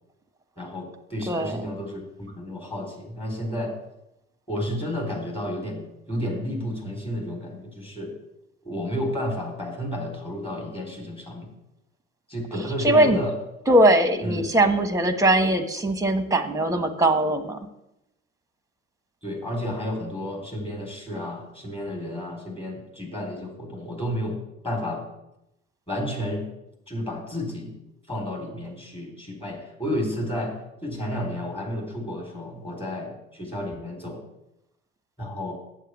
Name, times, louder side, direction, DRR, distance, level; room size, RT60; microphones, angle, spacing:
voice 1, 0.6-3.7 4.5-8.1 8.6-11.5 12.3-13.3 14.2-14.4 19.2-24.4 24.6-25.1 25.9-26.4 26.9-27.7 28.1-30.5 30.8-34.2 35.2-35.5, left 1 dB, 15° left, 1 dB, 4.1 m, -31 dB
voice 2, 1.3-1.6 12.8-13.2 13.7-17.6, right 1 dB, 10° right, 9 dB, 1.4 m, -20 dB
8.2 x 8.0 x 8.3 m, 0.88 s
figure-of-eight pair, 60°, 38 cm